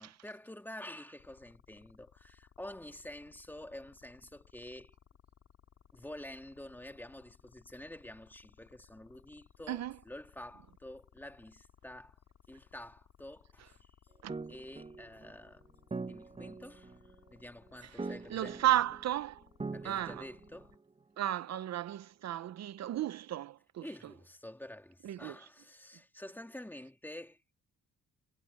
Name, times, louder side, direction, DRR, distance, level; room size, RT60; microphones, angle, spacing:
voice 1, 0.0-5.0 5.9-12.2 12.5-14.0 14.5-15.7 16.0-18.7 19.7-20.8 23.8-27.4, left 1 dB, 5° left, 2.8 m, -49 dB
sound 1, 1.2-20.8, left 8 dB, 60° left, 2.7 m, -63 dB
sound 2, 14.3-21.0, right 3 dB, 20° right, 1.3 m, -44 dB
voice 2, 18.0-19.4 19.8-20.2 21.2-23.9 25.0-25.3, right 13 dB, 60° right, 0.7 m, -34 dB
cardioid pair, 90°, 30 cm